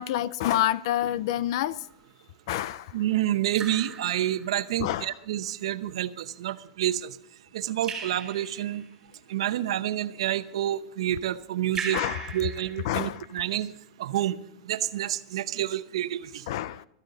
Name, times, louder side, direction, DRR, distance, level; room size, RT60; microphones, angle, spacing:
voice 1, 0.0-1.8 2.5-2.9 4.8-5.1 11.9-12.2 12.8-13.3 16.5-16.9, left 12 dB, 60° left, 0.4 m, -27 dB
Raindrop / Drip, 1.8-2.2 3.6-4.9 7.8-8.9 11.8-13.5, right 6 dB, 15° right, 3.6 m, -38 dB
voice 2, 2.9-7.2 7.5-8.8 9.3-12.0 12.3-13.7 14.0-14.4 14.6-16.4, right 12 dB, 85° right, 0.8 m, -28 dB
13.5 x 13.5 x 3.9 m
supercardioid pair, 160°, 3 cm